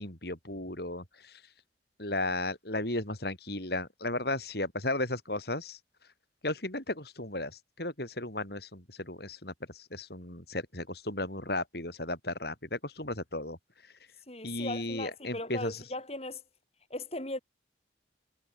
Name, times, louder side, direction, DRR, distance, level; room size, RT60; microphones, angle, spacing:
voice 1, 0.0-1.4 2.0-5.8 6.4-13.6 14.4-15.8, left 2 dB, 55° left, 6.6 m, -35 dB
voice 2, 14.3-16.4 16.9-17.4, left 2 dB, 35° left, 5.4 m, -38 dB
head